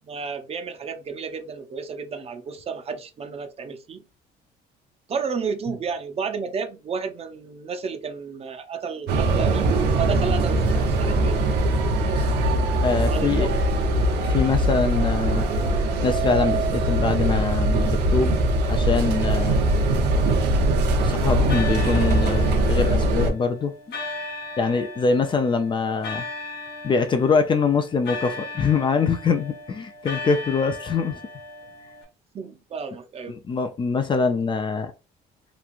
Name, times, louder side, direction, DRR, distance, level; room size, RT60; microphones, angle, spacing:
voice 1, 0.0-4.0 5.1-11.4 13.1-13.5 32.3-33.3, right 5 dB, 35° right, 0.5 m, -31 dB
sound 1, 9.1-23.3, right 1 dB, 80° right, 0.7 m, -21 dB
voice 2, 12.8-13.5 14.2-15.5 16.0-18.4 18.7-19.7 21.0-23.7 24.6-26.3 26.8-31.2 33.3-34.9, left 5 dB, 30° left, 0.4 m, -24 dB
Church bell at midnight, 20.0-20.9 21.5-32.0, left 3 dB, 80° left, 1.1 m, -37 dB
3.0 x 2.3 x 2.4 m
cardioid pair, 110°, 17 cm